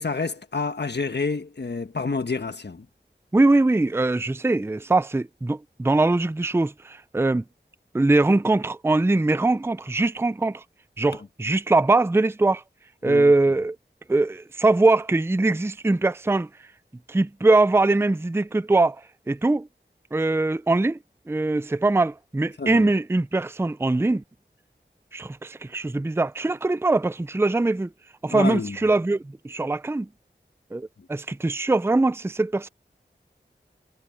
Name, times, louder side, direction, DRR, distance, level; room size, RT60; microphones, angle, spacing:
voice 1, 0.0-2.8 13.0-13.3 22.6-22.9 28.3-28.8, left 4 dB, 65° left, 1.3 m, -28 dB
voice 2, 3.3-7.4 7.9-10.6 11.0-12.6 13.0-13.8 14.1-16.5 17.1-19.7 20.1-21.0 21.3-24.2 25.1-27.9 28.2-30.1 30.7-32.7, right 2 dB, 15° right, 0.4 m, -22 dB
wide cardioid pair, 50°, 19 cm